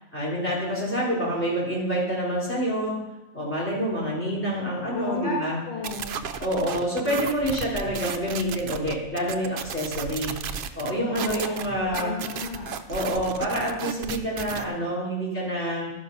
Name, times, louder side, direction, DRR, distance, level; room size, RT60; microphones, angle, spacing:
voice 1, 0.1-3.0 3.3-5.6 6.4-10.4 10.7-12.2 12.9-15.9, equal, 10° left, -6 dB, 3.6 m, -27 dB
voice 2, 4.9-5.3 5.6-6.2 7.0-7.2 11.1-11.5 11.9-12.8, left 4 dB, 30° left, -4 dB, 1.7 m, -33 dB
sound 1, 5.8-14.6, right 7 dB, 65° right, 0.5 m, -34 dB
12.5 x 5.6 x 5.4 m, 1.0 s
omnidirectional pair, 1.5 m